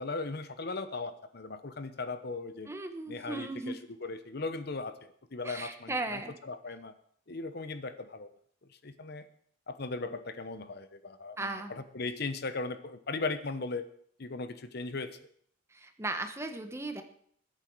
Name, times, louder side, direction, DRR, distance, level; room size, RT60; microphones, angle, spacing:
voice 1, 0.0-2.7 3.1-6.9 7.3-8.3 8.8-9.2 9.7-13.8 14.2-15.2, left 3 dB, 55° left, 11 dB, 0.9 m, -38 dB
voice 2, 2.7-3.8 5.4-6.3 11.4-11.7 15.7-17.0, right 2 dB, 15° right, 7 dB, 1.2 m, -36 dB
21.0 x 8.9 x 4.7 m, 0.63 s
head